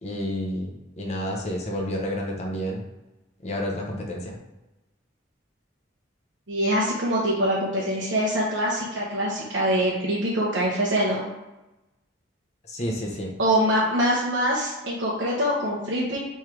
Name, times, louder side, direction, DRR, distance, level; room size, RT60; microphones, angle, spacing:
voice 1, 0.0-2.8 3.4-4.4 12.7-13.3, equal, 35° left, 0 dB, 0.7 m, -30 dB
voice 2, 6.5-11.3 13.4-16.2, equal, 70° right, -5 dB, 0.8 m, -24 dB
3.6 x 3.2 x 4.5 m, 1.0 s
head